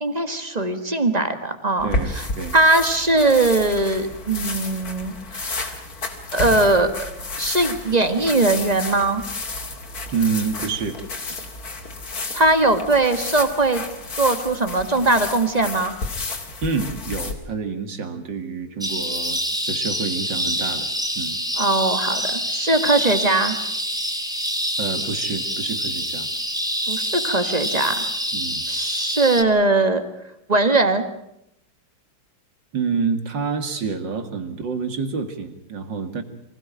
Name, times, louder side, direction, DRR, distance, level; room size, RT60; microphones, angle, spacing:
voice 1, 0.0-1.9 2.1-2.3 2.5-5.8 6.3-6.9 7.4-9.2 12.3-13.8 14.2-15.9 21.6-23.6 26.9-28.0 28.7-30.0 30.5-31.0, right 2 dB, 20° right, 9 dB, 1.7 m, -20 dB
sound 1, 1.8-17.3, left 3 dB, 50° left, 2.8 m, -31 dB
voice 2, 1.8-2.5 10.1-11.0 16.6-19.4 19.7-20.9 21.2-21.4 24.8-26.3 28.3-28.7 32.7-36.2, right 5 dB, 65° right, 8 dB, 2.7 m, -27 dB
sound 2, 18.8-29.4, equal, ahead, 1.7 m, -26 dB
24.5 x 16.5 x 8.9 m, 0.80 s
omnidirectional pair, 2.1 m